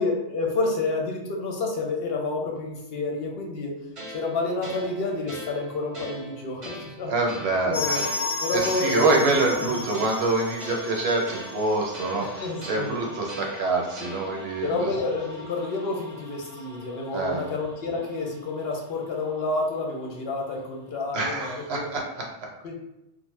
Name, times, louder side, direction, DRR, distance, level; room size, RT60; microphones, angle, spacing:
voice 1, 0.0-3.7 4.1-7.1 7.7-9.8 12.2-13.0 14.6-21.9 22.6-22.8, left 3 dB, 65° left, 0 dB, 0.7 m, -29 dB
sound 1, 4.0-14.6, equal, 35° right, 0.7 m, -41 dB
voice 2, 7.1-8.1 8.5-14.9 17.1-17.5 21.1-22.0, right 3 dB, 70° right, -1 dB, 0.9 m, -25 dB
sound 2, 7.7-18.3 18.5-18.6 18.9-19.0 19.6-19.7, left 3 dB, 25° left, 0.4 m, -36 dB
2.6 x 2.0 x 3.1 m, 0.92 s
omnidirectional pair, 1.2 m